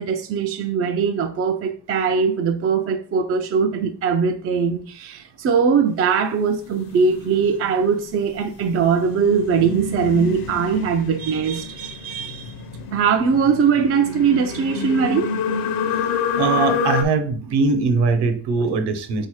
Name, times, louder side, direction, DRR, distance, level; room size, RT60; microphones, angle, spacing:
voice 1, 0.0-12.6 12.9-15.3, right 6 dB, 30° right, 0.4 m, -21 dB
sound 1, 6.6-17.0, left 6 dB, 50° left, 0.8 m, -28 dB
voice 2, 16.4-19.3, right 4 dB, 60° right, 1.0 m, -21 dB
3.9 x 2.8 x 4.7 m
cardioid pair, 115°, 45 cm